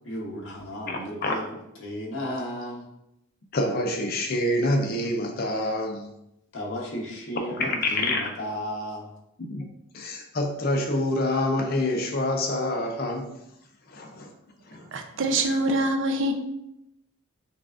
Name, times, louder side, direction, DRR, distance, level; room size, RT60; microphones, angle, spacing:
voice 1, 0.0-1.3 1.8-2.8 6.5-9.1, equal, 65° left, -2 dB, 1.0 m, -34 dB
voice 2, 0.9-1.4 3.5-6.1 7.6-8.3 9.5-9.7 9.9-13.4 13.9-14.3 14.7-14.9, left 1 dB, 45° left, 3 dB, 0.5 m, -27 dB
voice 3, 14.9-16.3, right 1 dB, 60° right, 5 dB, 0.5 m, -24 dB
5.7 x 2.4 x 2.4 m, 0.84 s
head